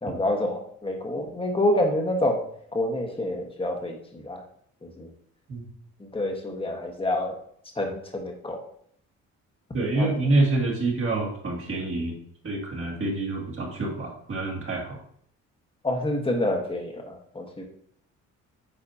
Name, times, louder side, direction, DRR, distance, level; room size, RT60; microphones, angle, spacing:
voice 1, 0.0-2.4 2.7-4.4 4.8-5.1 6.0-7.3 7.8-8.6 9.9-10.1 15.8-17.7, left 1 dB, 20° left, 2 dB, 1.5 m, -27 dB
voice 2, 9.7-12.1 12.4-15.0, right 2 dB, 45° right, -2 dB, 2.1 m, -27 dB
8.8 x 4.2 x 2.8 m, 0.64 s
cardioid pair, 90°, 30 cm